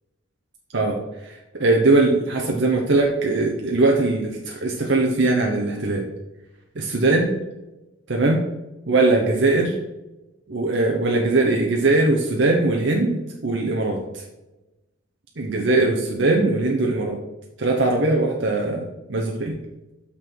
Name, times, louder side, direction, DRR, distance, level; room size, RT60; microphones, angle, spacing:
voice 1, 1.2-6.0 6.8-7.3 8.1-8.4 8.9-9.8 10.5-14.2 15.4-17.2 17.6-19.6, right 2 dB, 70° right, 0 dB, 0.9 m, -20 dB
6.2 x 5.8 x 4.6 m, 1.0 s
head